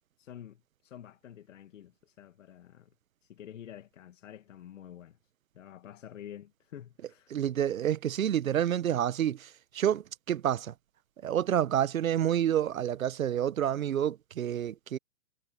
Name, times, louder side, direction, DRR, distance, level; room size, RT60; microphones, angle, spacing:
voice 1, 0.2-2.9 3.2-5.2 5.5-7.3, left 10 dB, 60° left, 2.1 m, -49 dB
voice 2, 7.3-10.7 11.2-15.0, right 10 dB, 75° right, 1.0 m, -29 dB
hypercardioid pair, 150°, 41 cm